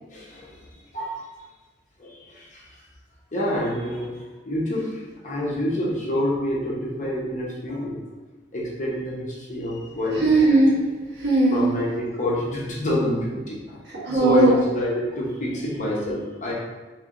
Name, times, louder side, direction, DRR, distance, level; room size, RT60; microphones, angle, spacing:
voice 1, 0.1-0.6 0.9-1.2 2.0-2.7 3.3-4.1 4.5-8.0 8.5-10.2 11.5-13.8 14.1-16.5, left 1 dB, 40° left, -5 dB, 0.9 m, -27 dB
voice 2, 9.9-10.8 11.1-11.8 13.8-14.6, right 2 dB, 65° right, -6 dB, 1.3 m, -19 dB
3.4 x 3.3 x 3.8 m, 1.2 s
head